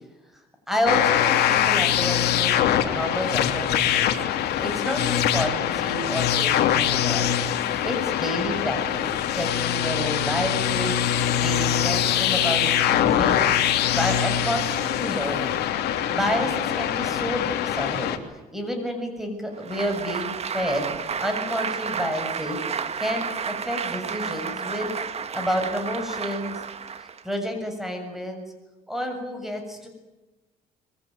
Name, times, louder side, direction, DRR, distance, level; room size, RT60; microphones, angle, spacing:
voice 1, 0.7-4.1 4.6-7.4 7.8-9.1 9.3-13.4 13.9-15.6 16.1-18.1 18.5-20.9 21.2-22.6 23.0-24.9 25.3-26.6 27.0-28.4 28.9-29.9, equal, ahead, 4 dB, 7.1 m, -29 dB
sound 1, 0.9-18.2, left 10 dB, 75° left, 3.0 m, -23 dB
Applause, 19.6-27.3, right 6 dB, 40° right, 1.9 m, -31 dB
25.5 x 23.0 x 9.6 m, 1.1 s
cardioid pair, 110°, 17 cm